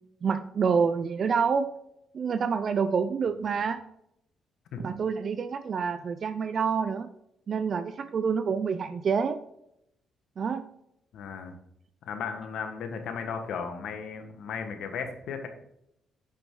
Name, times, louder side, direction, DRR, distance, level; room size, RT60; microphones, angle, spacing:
voice 1, 0.2-1.7 2.1-3.8 4.8-7.1 7.5-9.4 10.4-10.6, right 6 dB, 50° right, 10 dB, 0.5 m, -27 dB
voice 2, 11.1-11.5 12.0-15.5, left 6 dB, 75° left, 6 dB, 1.4 m, -35 dB
8.9 x 6.1 x 3.8 m, 0.77 s
cardioid pair, 90°, 0 cm